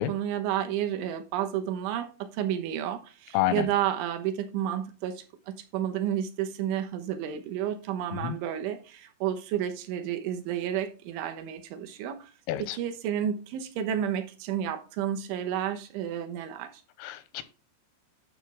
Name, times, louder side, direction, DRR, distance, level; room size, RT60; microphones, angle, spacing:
voice 1, 0.1-12.3 12.7-16.8, right 10 dB, 75° right, 3.5 m, -31 dB
voice 2, 3.3-3.7 8.2-8.4 12.5-12.8 17.0-17.4, left 13 dB, 90° left, 3.6 m, -28 dB
12.0 x 6.2 x 3.5 m
omnidirectional pair, 5.7 m